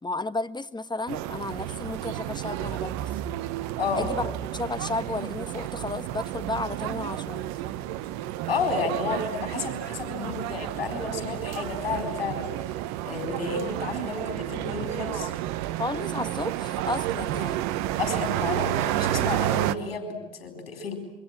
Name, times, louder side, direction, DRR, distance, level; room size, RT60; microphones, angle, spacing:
voice 1, 0.0-3.0 3.9-7.5 15.8-17.7, left 2 dB, 15° left, 14 dB, 1.5 m, -33 dB
sound 1, 1.1-19.7, right 13 dB, 70° right, 1.3 m, -31 dB
voice 2, 3.8-4.1 8.5-12.5 13.0-15.3 18.0-21.0, left 4 dB, 85° left, 5 dB, 4.2 m, -31 dB
27.5 x 24.0 x 7.4 m, 1.1 s
hypercardioid pair, 60°, 29 cm